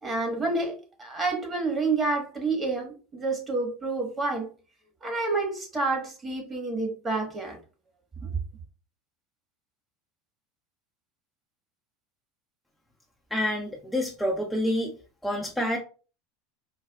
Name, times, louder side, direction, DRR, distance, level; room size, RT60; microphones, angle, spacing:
voice 1, 0.0-4.5 5.0-7.6 8.2-8.3, right 3 dB, 25° right, 1.4 m, -29 dB
voice 2, 13.3-14.9 15.2-15.8, left 1 dB, ahead, 0.6 m, -27 dB
4.5 x 2.4 x 2.3 m
hypercardioid pair, 85°, 0 cm